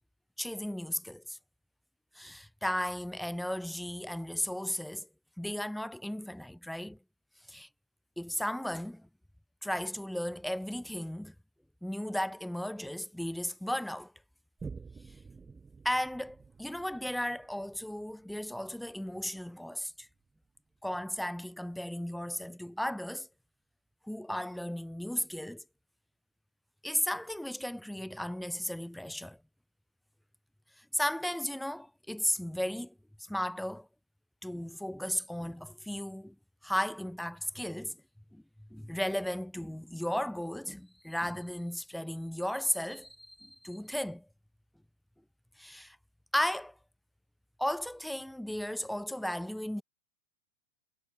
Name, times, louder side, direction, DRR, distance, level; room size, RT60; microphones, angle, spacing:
voice 1, 0.4-1.4 2.1-5.1 5.4-7.0 7.5-7.7 8.2-9.1 9.6-11.3 11.8-14.1 15.8-20.1 20.8-23.3 24.1-25.6 26.8-29.4 30.8-32.9 33.3-33.9 34.4-36.4 36.6-38.0 38.3-38.4 38.7-44.3 45.6-46.0 46.3-46.7 47.6-49.8, left 1 dB, ahead, 0.5 m, -35 dB
Boom, 14.6-21.5 22.0-22.1, right 4 dB, 15° right, 2.5 m, -51 dB
figure-of-eight pair, 90°, 0 cm